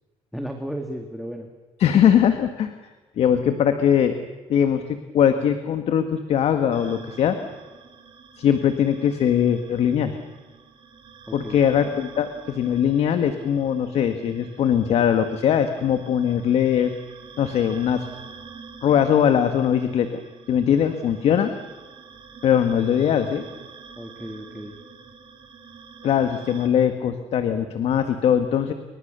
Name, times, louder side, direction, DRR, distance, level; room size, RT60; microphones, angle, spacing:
voice 1, 0.3-1.5 11.3-11.6 24.0-24.8, equal, ahead, 4 dB, 2.4 m, -34 dB
voice 2, 1.8-2.7 3.2-4.1 4.5-4.8 5.1-7.4 8.4-10.2 11.3-16.9 17.4-18.0 18.8-20.2 20.5-21.5 22.4-23.4 26.0-28.7, left 9 dB, 60° left, 8 dB, 1.7 m, -21 dB
sound 1, 6.7-26.7, right 5 dB, 45° right, 3.6 m, -46 dB
28.5 x 24.5 x 6.9 m, 1.3 s
cardioid pair, 125°, 12 cm